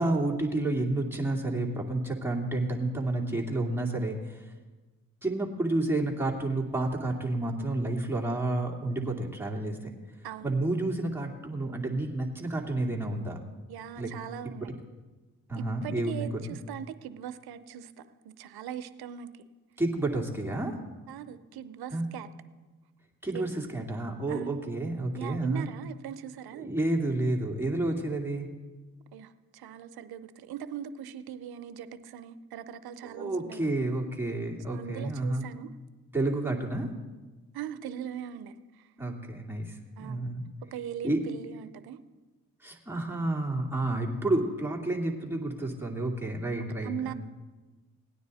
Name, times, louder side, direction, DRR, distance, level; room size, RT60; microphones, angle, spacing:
voice 1, 0.0-4.5 5.2-9.9 10.4-13.4 14.0-14.1 14.6-14.7 15.5-16.5 19.8-20.7 21.9-22.0 23.2-25.7 26.6-28.5 33.0-35.5 36.1-36.9 39.0-40.5 41.0-41.2 42.6-47.1, right 2 dB, 5° right, -2 dB, 2.5 m, -30 dB
voice 2, 13.7-14.7 15.6-19.3 21.1-22.3 23.3-23.5 24.3-24.7 25.1-26.7 27.8-27.9 29.1-33.7 34.7-35.7 37.5-38.9 40.0-40.3 40.7-42.0 46.8-47.1, right 9 dB, 90° right, 13 dB, 0.6 m, -40 dB
17.5 x 9.5 x 4.2 m, 1.2 s
supercardioid pair, 40°, 37 cm